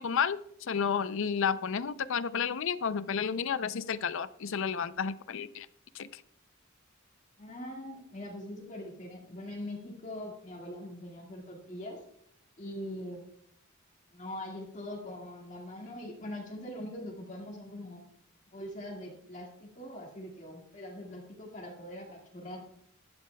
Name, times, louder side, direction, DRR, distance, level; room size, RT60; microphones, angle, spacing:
voice 1, 0.0-5.7 5.9-6.2, left 6 dB, 65° left, 15 dB, 0.5 m, -31 dB
voice 2, 7.4-12.0 12.6-13.2 14.1-18.0 18.5-22.6, left 1 dB, 35° left, 0 dB, 2.0 m, -42 dB
15.0 x 11.5 x 2.3 m, 0.68 s
head